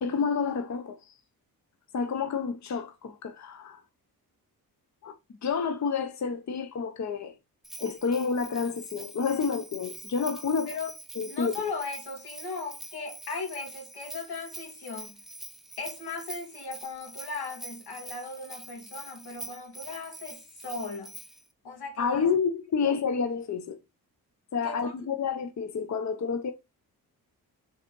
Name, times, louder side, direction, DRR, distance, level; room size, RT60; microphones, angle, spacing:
voice 1, 0.0-1.2 1.9-3.8 5.0-5.1 5.4-7.3 7.8-10.7 11.2-11.5 22.0-23.8 24.5-26.5, left 5 dB, 45° left, 0.8 m, -29 dB
Bell, 7.6-21.5, right 1 dB, ahead, 1.0 m, -45 dB
voice 2, 11.3-15.2 15.8-21.1 21.6-22.3 22.8-23.0 24.6-25.1, left 4 dB, 80° left, 2.5 m, -37 dB
5.1 x 4.1 x 5.3 m
cardioid pair, 85°, 38 cm